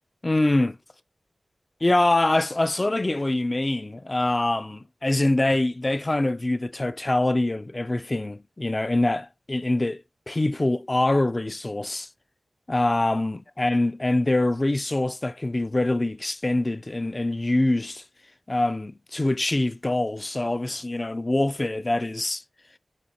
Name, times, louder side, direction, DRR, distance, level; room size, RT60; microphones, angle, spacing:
voice 1, 0.2-0.8 1.8-12.1 12.7-18.0 18.5-22.4, left 2 dB, 35° left, 0.3 m, -24 dB
7.2 x 2.4 x 2.7 m
cardioid pair, 45°, 0 cm